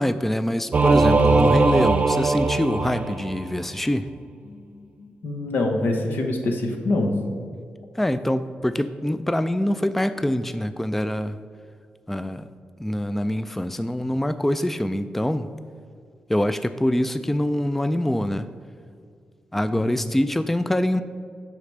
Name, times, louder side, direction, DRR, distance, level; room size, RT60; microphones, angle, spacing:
voice 1, 0.0-4.1 7.9-11.4 12.1-12.5 12.8-15.5 16.3-18.5 19.5-21.0, left 1 dB, 5° left, 12 dB, 0.3 m, -24 dB
Singing / Musical instrument, 0.7-3.6, right 3 dB, 45° right, 0.6 m, -20 dB
voice 2, 4.5-7.2 19.7-19.9, left 2 dB, 75° left, 3 dB, 1.1 m, -26 dB
6.6 x 5.0 x 6.5 m, 2.2 s
cardioid pair, 65°, 3 cm